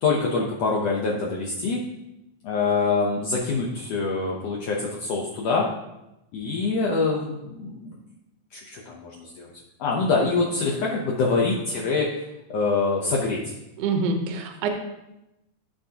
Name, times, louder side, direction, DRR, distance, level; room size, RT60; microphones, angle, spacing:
voice 1, 0.0-1.8 2.4-5.7 6.3-8.0 8.5-9.5 9.8-12.1 12.5-13.5, left 4 dB, 80° left, -3 dB, 1.4 m, -25 dB
voice 2, 13.8-14.7, right 4 dB, 80° right, 5 dB, 1.4 m, -25 dB
12.0 x 5.3 x 2.9 m, 0.93 s
omnidirectional pair, 4.1 m